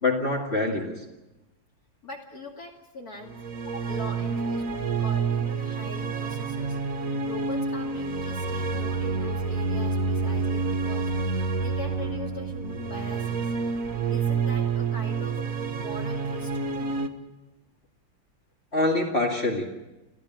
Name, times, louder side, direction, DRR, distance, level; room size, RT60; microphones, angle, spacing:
voice 1, 0.0-1.0 18.7-19.6, left 2 dB, 30° left, -1 dB, 2.4 m, -25 dB
voice 2, 2.0-3.4 3.8-6.8 7.2-11.1 11.6-13.5 14.1-17.0, left 2 dB, 45° left, -1 dB, 2.8 m, -42 dB
sound 1, 3.3-17.1, right 4 dB, 45° right, 1.8 m, -28 dB
27.0 x 15.5 x 8.9 m, 1.0 s
omnidirectional pair, 2.3 m